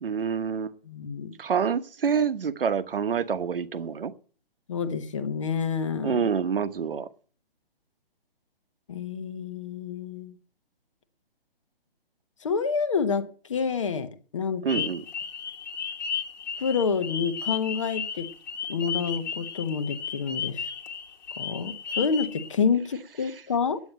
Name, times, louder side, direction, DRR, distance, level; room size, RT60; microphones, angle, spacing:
voice 1, 0.0-0.7 1.4-4.1 6.0-7.1 14.6-15.0, right 6 dB, 65° right, 1.1 m, -27 dB
voice 2, 0.9-1.3 4.7-6.2 8.9-10.3 12.4-14.8 16.6-18.3 18.7-20.7 21.4-23.8, left 5 dB, 30° left, 1.0 m, -28 dB
sound 1, 14.7-22.5, left 7 dB, 45° left, 1.5 m, -34 dB
9.5 x 9.1 x 8.0 m
hypercardioid pair, 170°, 30 cm